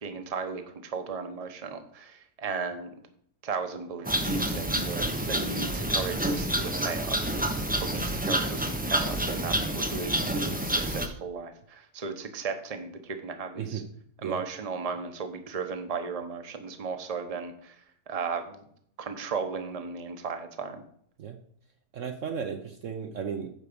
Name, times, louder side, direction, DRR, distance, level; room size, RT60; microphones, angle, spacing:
voice 1, 0.0-2.9 3.4-7.3 7.8-13.8 14.2-17.8 18.1-18.6 19.0-20.8, right 5 dB, 30° right, 7 dB, 0.9 m, -36 dB
sound 1, 4.0-11.1, right 1 dB, 10° right, 0.5 m, -28 dB
voice 2, 13.6-14.4 21.2-21.4 21.9-23.5, right 7 dB, 60° right, 6 dB, 1.0 m, -35 dB
9.7 x 4.7 x 6.9 m, 0.65 s
omnidirectional pair, 1.7 m